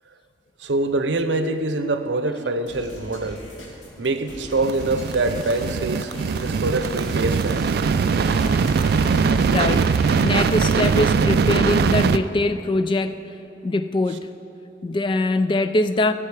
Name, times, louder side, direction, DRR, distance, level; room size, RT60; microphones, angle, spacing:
voice 1, 0.6-3.4 4.0-7.6 9.5-9.8, right 2 dB, 85° right, 9 dB, 0.7 m, -25 dB
sound 1, 2.7-10.0, equal, 85° left, 2.2 m, -41 dB
sound 2, 3.8-12.2 12.5-12.6, equal, ahead, 2.2 m, -39 dB
sound 3, 4.6-12.2, right 5 dB, 60° right, 0.3 m, -21 dB
voice 2, 9.5-9.9 10.2-13.2 13.6-14.3 14.8-16.1, left 2 dB, 25° left, 11 dB, 0.3 m, -22 dB
15.5 x 7.5 x 4.8 m, 2.7 s
head